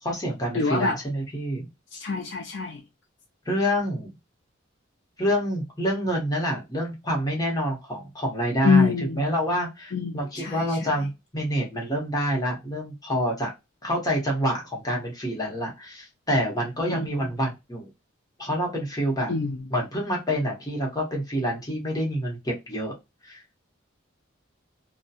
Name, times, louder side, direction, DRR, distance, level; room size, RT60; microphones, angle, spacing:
voice 1, 0.0-1.7 3.5-4.1 5.2-13.5 13.8-17.9 18.4-19.3 19.7-22.9 23.2-23.4, equal, 20° left, 0.9 m, -27 dB
voice 2, 0.5-1.0 1.9-2.8 8.6-9.2 9.9-10.9 16.9-17.1 19.3-19.6, left 4 dB, 65° left, 0.5 m, -25 dB
2.7 x 2.2 x 2.3 m
head